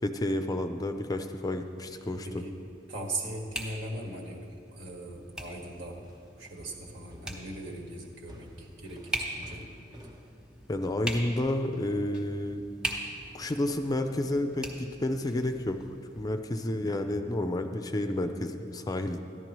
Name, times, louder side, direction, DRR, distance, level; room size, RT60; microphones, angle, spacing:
voice 1, 0.0-2.3 10.7-12.6 13.3-15.8 16.1-19.2, left 1 dB, 20° left, 7 dB, 0.4 m, -30 dB
sound 1, 1.1-16.3, right 1 dB, 5° right, 1.2 m, -42 dB
voice 2, 2.2-2.6 2.9-6.0 6.4-9.6 16.7-17.4, right 2 dB, 70° right, 0 dB, 1.7 m, -40 dB
sound 2, 5.5-10.3, equal, 20° right, 1.0 m, -52 dB
14.5 x 11.0 x 3.0 m, 2.5 s
head